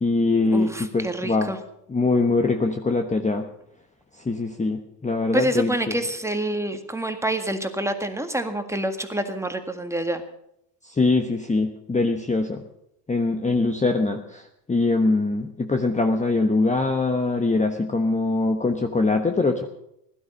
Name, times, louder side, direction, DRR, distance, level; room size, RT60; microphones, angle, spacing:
voice 1, 0.0-1.5 1.9-3.5 4.2-5.9 10.8-12.6 13.1-19.7, left 3 dB, 15° left, 5 dB, 1.2 m, -23 dB
voice 2, 0.5-1.6 5.3-10.2, right 1 dB, 5° right, 7 dB, 1.8 m, -27 dB
16.0 x 12.0 x 6.6 m, 0.78 s
supercardioid pair, 90°, 48 cm